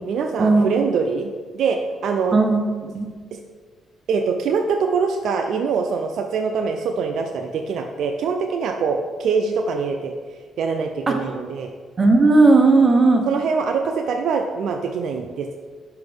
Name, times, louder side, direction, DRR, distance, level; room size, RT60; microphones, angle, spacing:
voice 1, 0.1-2.4 3.3-3.4 4.1-10.1 10.6-11.7 13.3-15.6, right 5 dB, 70° right, 5 dB, 0.5 m, -24 dB
voice 2, 2.3-2.6 2.9-3.1 11.1-11.2 12.0-13.2, right 3 dB, 30° right, 4 dB, 1.1 m, -15 dB
5.8 x 5.7 x 5.3 m, 1.5 s
cardioid pair, 90°, 0 cm